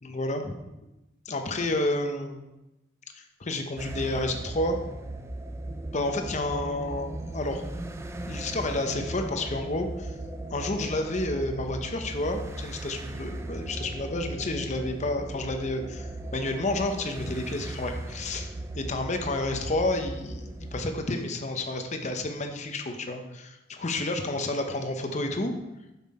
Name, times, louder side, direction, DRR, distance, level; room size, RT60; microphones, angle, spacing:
voice 1, 0.0-0.6 1.3-2.4 3.1-4.8 5.9-7.6 8.3-10.1 10.5-25.5, left 2 dB, 35° left, 5 dB, 0.8 m, -30 dB
sound 1, 3.8-20.9, right 1 dB, 15° right, 0.4 m, -37 dB
7.1 x 5.9 x 4.3 m, 0.97 s
head